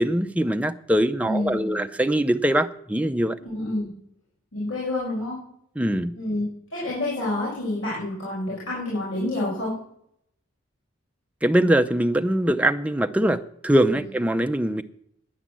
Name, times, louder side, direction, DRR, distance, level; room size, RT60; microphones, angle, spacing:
voice 1, 0.0-3.4 5.8-6.1 11.4-14.8, right 1 dB, 5° right, 7 dB, 0.5 m, -22 dB
voice 2, 1.2-1.8 3.4-3.9 4.5-5.4 6.1-6.4 6.7-9.7 13.9-14.0, left 1 dB, 90° left, -8 dB, 5.4 m, -28 dB
10.0 x 9.7 x 7.5 m, 0.71 s
head